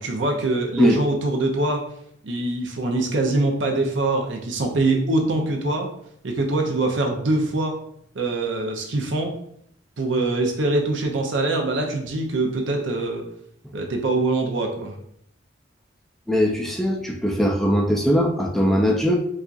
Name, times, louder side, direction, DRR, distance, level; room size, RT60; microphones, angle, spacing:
voice 1, 0.0-1.9 2.2-5.9 6.2-7.7 8.1-9.3 10.0-13.2 13.7-15.0, right 2 dB, 75° right, 2 dB, 0.6 m, -23 dB
voice 2, 16.3-19.2, equal, ahead, 0 dB, 0.3 m, -20 dB
4.3 x 2.4 x 2.5 m, 0.69 s
head